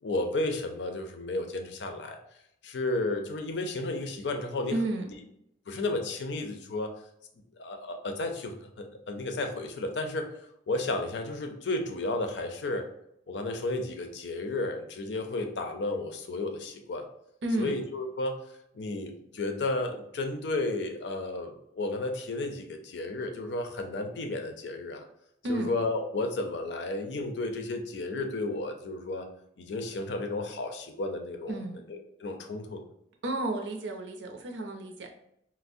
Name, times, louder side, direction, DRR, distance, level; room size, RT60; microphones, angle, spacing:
voice 1, 0.0-2.2 2.6-4.8 5.7-6.9 7.6-10.3 10.7-12.9 13.3-17.0 17.6-18.4 18.7-25.0 25.5-29.3 29.6-31.6 31.9-32.8, left 2 dB, 75° left, 5 dB, 0.5 m, -33 dB
voice 2, 4.7-5.1 17.4-17.7 25.4-25.7 31.5-31.8 33.2-35.1, right 1 dB, 90° right, 3 dB, 0.6 m, -32 dB
4.3 x 2.0 x 2.5 m, 0.76 s
head